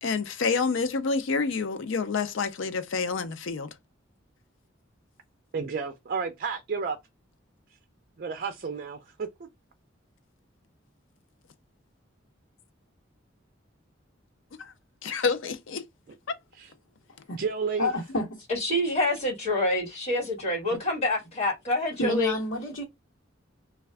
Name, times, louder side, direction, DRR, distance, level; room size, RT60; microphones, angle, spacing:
voice 1, 0.0-3.7 14.6-14.7 15.0-15.8, left 4 dB, 70° left, 0.5 m, -28 dB
voice 2, 5.5-7.0 8.2-9.3 16.1-16.2 16.5-16.7 17.4-17.9, right 5 dB, 50° right, 0.5 m, -31 dB
voice 3, 17.8-18.4 20.7-20.8 22.0-22.8, left 1 dB, 90° left, 1.1 m, -29 dB
voice 4, 18.5-22.3, left 1 dB, 35° left, 2.0 m, -27 dB
3.3 x 2.3 x 3.3 m
head